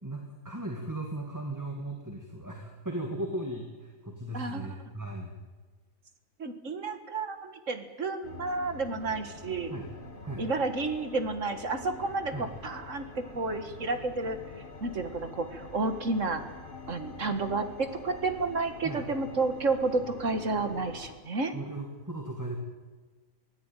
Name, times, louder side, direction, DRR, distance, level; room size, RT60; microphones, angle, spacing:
voice 1, 0.0-5.4 9.7-9.9 10.2-10.5 12.3-12.5 18.8-19.0 21.5-22.6, right 1 dB, 10° right, 2 dB, 2.1 m, -37 dB
voice 2, 6.4-9.7 10.4-14.4 14.8-16.4 16.9-21.5, right 3 dB, 60° right, 8 dB, 2.1 m, -31 dB
sound 1, 8.2-21.2, left 3 dB, 40° left, 2.3 m, -45 dB
24.5 x 16.5 x 9.1 m, 1.3 s
omnidirectional pair, 1.5 m